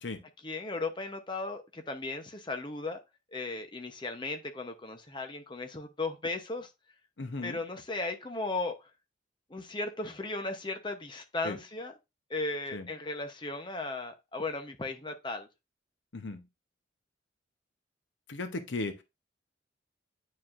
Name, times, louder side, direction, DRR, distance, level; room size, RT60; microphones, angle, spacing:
voice 1, 0.4-3.0 3.3-6.7 7.4-8.9 9.5-11.9 12.3-15.5, left 3 dB, 25° left, 0.8 m, -36 dB
voice 2, 7.2-7.6 11.4-11.6 12.7-12.9 16.1-16.4 18.3-19.0, left 2 dB, 75° left, 0.8 m, -36 dB
9.2 x 4.7 x 2.5 m
head